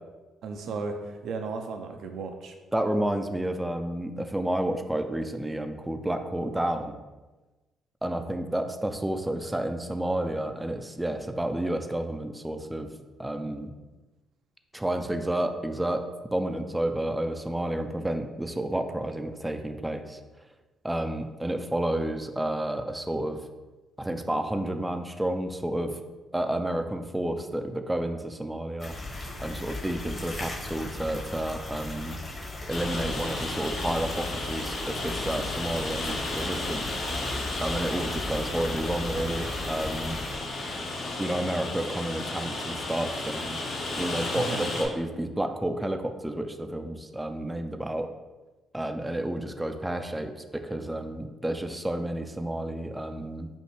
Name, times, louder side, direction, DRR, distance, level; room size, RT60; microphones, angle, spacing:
voice 1, 0.4-2.5 44.4-44.7, right 4 dB, 75° right, 5 dB, 0.5 m, -34 dB
voice 2, 2.7-7.0 8.0-12.9 13.2-13.7 14.7-16.0 16.3-20.2 20.8-23.4 24.0-26.0 26.3-29.0 29.4-32.2 32.7-37.1 37.6-40.2 41.2-43.6 44.0-48.1 48.7-53.5, right 1 dB, 10° right, 6 dB, 0.3 m, -30 dB
sound 1, 28.8-40.3, left 2 dB, 35° left, 1.0 m, -37 dB
Rain, 32.7-44.8, left 2 dB, 65° left, 0.9 m, -33 dB
sound 2, 38.5-43.9, left 3 dB, 90° left, 0.5 m, -50 dB
5.3 x 2.5 x 3.2 m, 1.2 s
cardioid pair, 90°, 0 cm